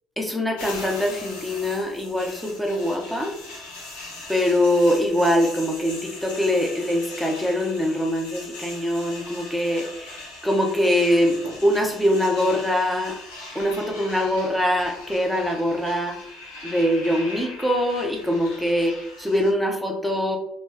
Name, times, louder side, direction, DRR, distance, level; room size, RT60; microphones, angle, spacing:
voice 1, 0.2-3.4 4.3-10.2 10.4-13.2 13.5-16.2 16.6-20.4, equal, ahead, 1 dB, 0.9 m, -23 dB
sound 1, 0.6-19.5, left 2 dB, 80° left, 0.9 m, -40 dB
4.5 x 2.3 x 2.8 m, 0.75 s
hypercardioid pair, 55°, 0 cm